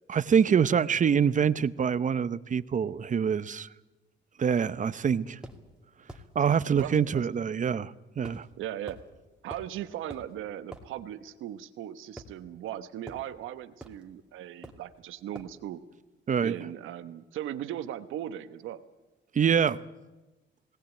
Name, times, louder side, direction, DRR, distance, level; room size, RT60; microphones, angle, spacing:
voice 1, 0.1-3.7 4.4-5.4 6.3-8.5 16.3-16.5 19.3-19.8, right 7 dB, 40° right, 0.8 m, -25 dB
sound 1, 5.4-5.6 6.1-6.3 6.8-7.0 8.2-8.5 8.9-9.0 9.5-9.7 10.1-10.3 10.7-10.9 12.2-12.7 13.1-13.3 13.8-14.0 14.6-14.9 15.3-15.6, right 1 dB, 5° right, 2.5 m, -45 dB
voice 2, 6.7-7.3 8.6-9.0 9.4-15.8 16.4-18.8, right 11 dB, 85° right, 1.1 m, -38 dB
19.5 x 18.0 x 9.0 m
cardioid pair, 90°, 20 cm